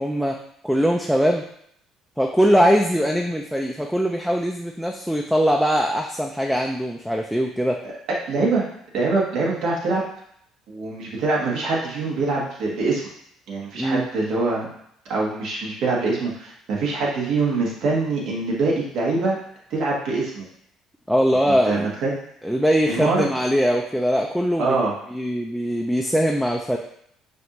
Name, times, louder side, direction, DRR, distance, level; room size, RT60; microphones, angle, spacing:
voice 1, 0.0-1.4 2.2-7.8 13.8-14.1 21.1-21.9 22.4-24.8 25.1-26.8, equal, ahead, 1 dB, 0.4 m, -21 dB
voice 2, 8.3-8.7 8.9-10.0 10.7-13.1 13.5-14.7 15.1-19.4 19.7-20.5 21.4-22.1 22.9-23.3 24.6-24.9, right 3 dB, 65° right, -3 dB, 1.3 m, -24 dB
5.1 x 2.6 x 3.0 m, 0.69 s
supercardioid pair, 85°, 0 cm